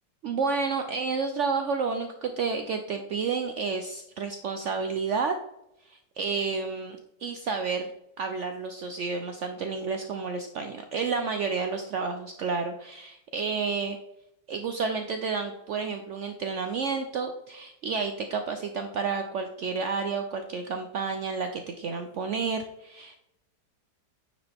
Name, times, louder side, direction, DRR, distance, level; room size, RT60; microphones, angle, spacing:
voice 1, 0.2-5.4 5.8-7.9 8.2-14.0 14.5-23.2, right 5 dB, 80° right, 6 dB, 0.6 m, -30 dB
9.2 x 5.0 x 3.4 m, 0.85 s
omnidirectional pair, 1.9 m